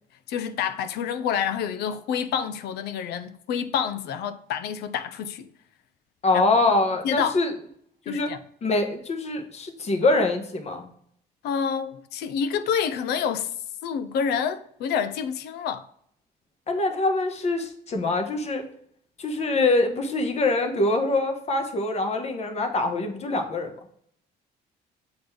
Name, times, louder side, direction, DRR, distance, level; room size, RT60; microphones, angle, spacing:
voice 1, 0.3-5.4 6.3-6.4 7.0-7.4 8.1-8.4 11.4-13.5 13.8-15.9, left 7 dB, 75° left, 0.6 m, -28 dB
voice 2, 6.2-7.5 8.1-8.3 8.6-10.9 16.7-18.6 19.2-23.7, left 2 dB, 40° left, 1.1 m, -24 dB
7.1 x 3.9 x 3.4 m
cardioid pair, 110°, 17 cm